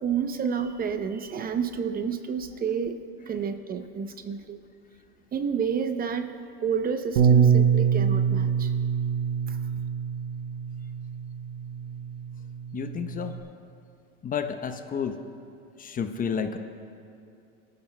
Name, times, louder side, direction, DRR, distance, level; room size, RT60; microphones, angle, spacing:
voice 1, 0.0-3.0 3.3-4.6 5.3-8.7 9.5-9.6, right 6 dB, 30° right, 9 dB, 0.7 m, -30 dB
Bass guitar, 7.2-13.4, right 7 dB, 75° right, 1.1 m, -25 dB
voice 2, 12.7-13.3 14.2-15.2 15.8-16.6, left 7 dB, 30° left, 7 dB, 0.8 m, -30 dB
21.5 x 13.5 x 2.2 m, 2.6 s
supercardioid pair, 100°, 30 cm